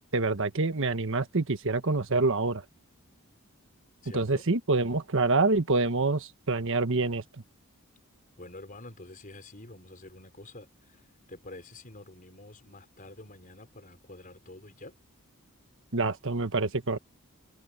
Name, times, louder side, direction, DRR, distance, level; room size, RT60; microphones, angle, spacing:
voice 1, 0.1-2.6 4.1-7.2 15.9-17.0, right 3 dB, 65° right, 1.4 m, -26 dB
voice 2, 4.0-4.5 8.4-15.0, left 2 dB, 40° left, 5.3 m, -48 dB
head